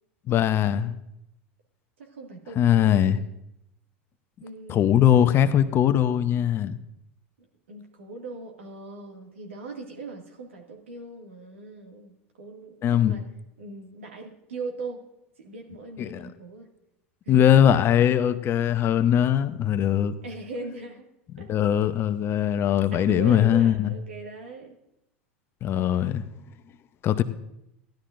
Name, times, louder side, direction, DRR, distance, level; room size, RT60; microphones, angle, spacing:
voice 1, 0.3-0.9 2.6-3.2 4.7-6.8 12.8-13.1 16.0-16.3 17.3-20.1 21.3-23.9 25.6-26.2 27.0-27.2, left 10 dB, 35° left, 11 dB, 0.7 m, -21 dB
voice 2, 2.0-3.3 4.4-5.0 7.7-13.3 13.6-15.0 15.4-16.7 17.3-17.7 20.2-21.1 21.4-21.5 22.9-24.8, right 3 dB, 80° right, 2 dB, 2.1 m, -39 dB
15.5 x 11.5 x 2.5 m, 0.83 s
hypercardioid pair, 85°, 7 cm